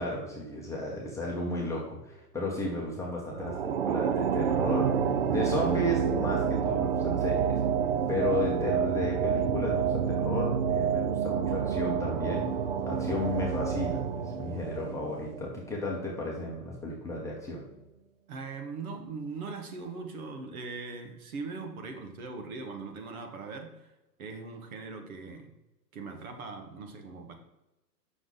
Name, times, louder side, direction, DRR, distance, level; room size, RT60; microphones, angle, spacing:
voice 1, 0.0-5.0 5.3-7.6 8.1-12.5 12.9-17.6, left 2 dB, 5° left, -4 dB, 1.0 m, -33 dB
sound 1, 3.3-15.9, right 7 dB, 40° right, 0.4 m, -29 dB
voice 2, 18.3-23.9 24.2-25.5 25.9-27.3, right 4 dB, 55° right, 5 dB, 1.5 m, -40 dB
7.7 x 6.3 x 3.8 m, 0.97 s
hypercardioid pair, 135°, 50 cm